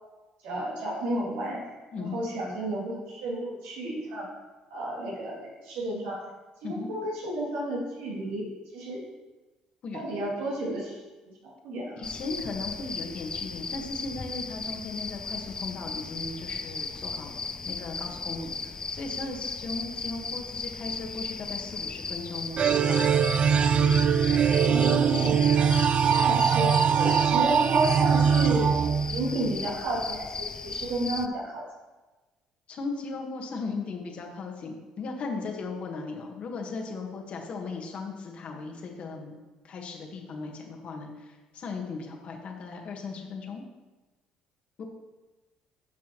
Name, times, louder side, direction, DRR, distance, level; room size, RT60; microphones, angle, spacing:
voice 1, 0.4-4.3 4.7-6.2 6.6-8.5 8.7-9.0 9.9-11.0 11.4-12.0 24.6-25.4 26.1-28.8 29.1-31.6, right 1 dB, 85° right, -4 dB, 2.7 m, -32 dB
voice 2, 1.9-2.2 6.6-6.9 9.8-10.0 12.0-23.2 32.7-39.4 39.6-43.6 44.8-44.9, left 3 dB, 55° left, 2 dB, 1.5 m, -37 dB
sound 1, 12.0-31.3, left 4 dB, 30° left, 0.4 m, -36 dB
sound 2, 22.6-29.6, right 7 dB, 45° right, 0.4 m, -22 dB
9.8 x 6.1 x 3.1 m, 1.2 s
supercardioid pair, 80°, 2 cm